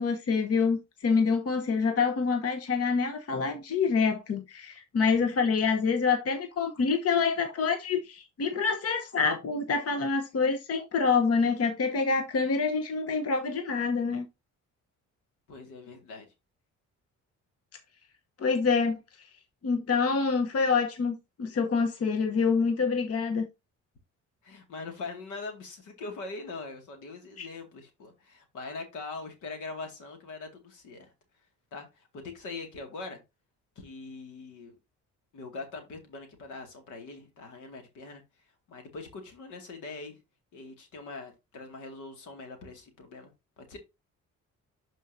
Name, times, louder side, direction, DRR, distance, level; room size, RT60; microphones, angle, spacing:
voice 1, 0.0-14.3 18.4-19.3 19.6-23.5 27.4-27.5, left 5 dB, 50° left, 1.1 m, -26 dB
voice 2, 15.5-16.3 24.4-31.1 31.7-33.2 33.8-34.8 35.3-38.2 38.7-40.2 40.5-43.8, left 3 dB, 85° left, 2.2 m, -42 dB
11.5 x 4.6 x 2.7 m
cardioid pair, 90°, 30 cm